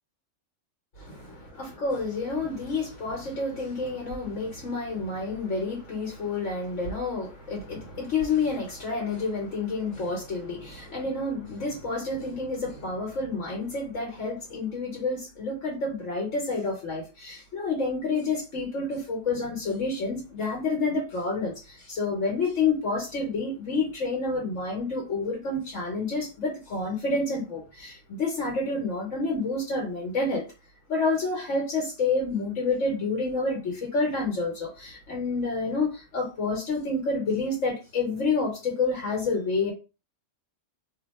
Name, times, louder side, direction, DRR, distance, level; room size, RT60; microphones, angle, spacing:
voice 1, 1.0-21.5 21.9-30.4 30.9-39.7, left 3 dB, 75° left, 1.3 m, -29 dB
2.7 x 2.3 x 4.1 m
omnidirectional pair, 1.3 m